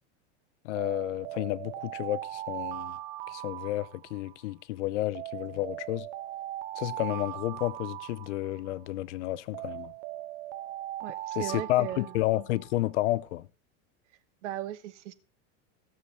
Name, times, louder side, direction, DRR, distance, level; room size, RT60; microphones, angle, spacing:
voice 1, 0.6-3.0 3.3-6.1 6.8-9.9 11.3-13.5, left 16 dB, 80° left, 0.7 m, -31 dB
Alarm, 0.8-4.5 5.1-8.9 9.5-12.8, right 14 dB, 40° right, 0.6 m, -39 dB
voice 2, 11.0-12.1 14.4-15.1, right 13 dB, 80° right, 1.3 m, -37 dB
16.5 x 7.0 x 4.2 m
supercardioid pair, 165°, 35 cm